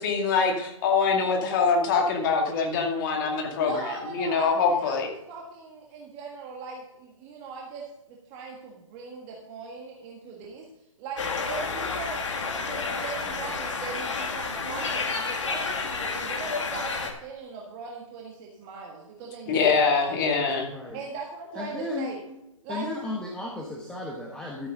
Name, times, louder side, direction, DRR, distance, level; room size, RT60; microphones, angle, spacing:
voice 1, 0.0-5.1 19.5-20.7, left 5 dB, 35° left, 2 dB, 2.2 m, -24 dB
voice 2, 3.6-10.7 11.0-12.2 12.7-20.3 20.9-22.4 22.6-22.9, right 4 dB, 25° right, -2 dB, 1.6 m, -40 dB
sound 1, 11.2-17.1, left 4 dB, 60° left, 2.0 m, -30 dB
voice 3, 19.5-19.8 20.7-21.0 21.5-22.1 22.7-24.7, left 2 dB, 5° left, -2 dB, 1.1 m, -34 dB
13.5 x 9.0 x 3.8 m, 0.86 s
hypercardioid pair, 140°, 17 cm